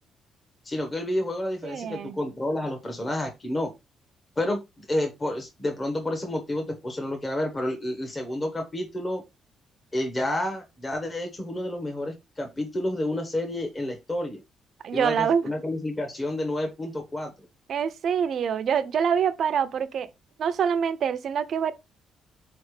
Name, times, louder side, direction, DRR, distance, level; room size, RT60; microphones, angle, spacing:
voice 1, 0.6-3.7 4.4-4.6 4.9-9.2 9.9-14.4 14.9-17.3, left 1 dB, 25° left, 1.1 m, -30 dB
voice 2, 1.6-2.2 14.8-15.5 17.7-20.1 20.4-21.7, right 7 dB, 60° right, 0.5 m, -25 dB
4.0 x 3.2 x 3.2 m
cardioid pair, 90°, 0 cm